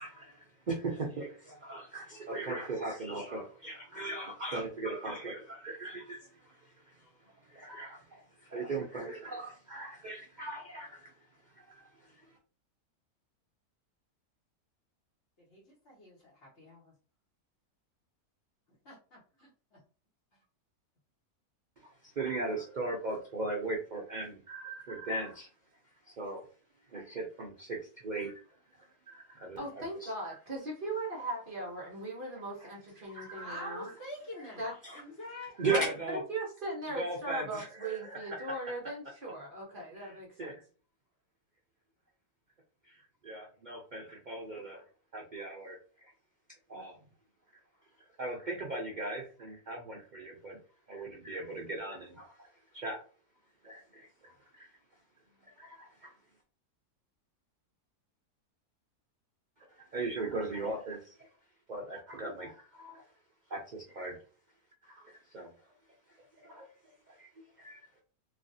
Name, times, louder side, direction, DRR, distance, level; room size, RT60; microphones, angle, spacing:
voice 1, 0.0-7.1 7.4-11.1 11.6-12.2 22.0-25.5 26.1-26.4 26.9-28.3 29.1-29.6 30.0-30.3 33.1-33.8 34.8-35.0 35.6-36.2 36.9-38.6 40.0-40.6 42.8-44.8 45.1-46.1 46.7-47.0 48.2-50.6 50.9-52.5 52.7-53.0 53.6-54.7 55.6-56.1 59.8-61.3 61.7-63.0 63.5-64.2 64.8-65.5 66.4-66.7 67.1-67.3 67.6-67.8, right 2 dB, 90° right, 0.4 m, -38 dB
voice 2, 15.5-16.9 18.9-19.8 33.4-35.8, left 1 dB, 50° left, 1.2 m, -47 dB
voice 3, 29.6-33.9 34.6-34.7 35.7-40.6, right 1 dB, 45° right, 0.8 m, -39 dB
3.2 x 2.4 x 2.6 m
omnidirectional pair, 1.6 m